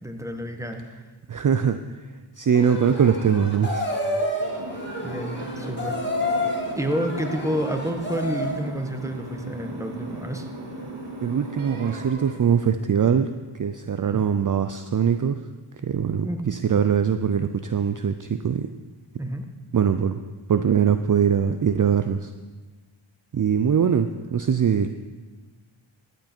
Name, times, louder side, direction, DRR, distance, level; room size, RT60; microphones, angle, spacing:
voice 1, 0.0-1.0 5.0-6.0 6.7-10.5 16.2-16.4 19.2-19.5, right 1 dB, 5° right, 5 dB, 1.3 m, -29 dB
voice 2, 1.3-1.8 2.4-3.9 11.2-13.3 13.5-15.4 15.8-18.7 19.7-20.2 20.5-22.3 23.3-24.9, right 7 dB, 40° right, 10 dB, 0.5 m, -22 dB
sound 1, 2.5-8.7, left 1 dB, 20° left, 2.3 m, -29 dB
sound 2, 3.6-5.0 5.4-9.7 11.5-12.8, right 3 dB, 80° right, 1.2 m, -44 dB
sound 3, 4.6-12.1, right 2 dB, 60° right, 2.1 m, -37 dB
14.5 x 8.2 x 4.4 m, 1.3 s
cardioid pair, 45°, 49 cm